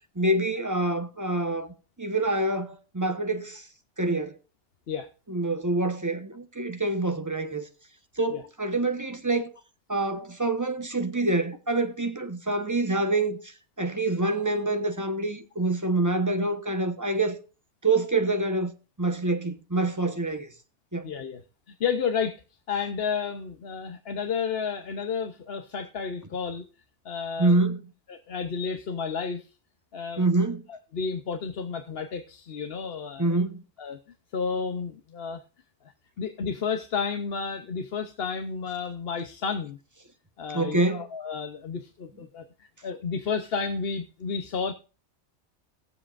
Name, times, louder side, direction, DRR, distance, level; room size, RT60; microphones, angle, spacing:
voice 1, 0.1-3.7 4.0-4.4 5.3-7.7 8.2-9.5 9.9-17.4 17.8-18.7 19.0-20.5 20.9-21.1 27.4-27.8 30.2-30.6 33.2-33.6 40.5-41.1, right 2 dB, 15° right, 1.0 m, -26 dB
voice 2, 21.0-21.4 21.8-22.4 22.7-26.7 27.0-27.6 28.1-29.5 29.9-30.2 30.7-33.4 33.8-34.0 34.3-35.4 36.2-39.8 40.4-44.7, left 6 dB, 60° left, 1.0 m, -31 dB
20.5 x 7.4 x 2.5 m
omnidirectional pair, 1.2 m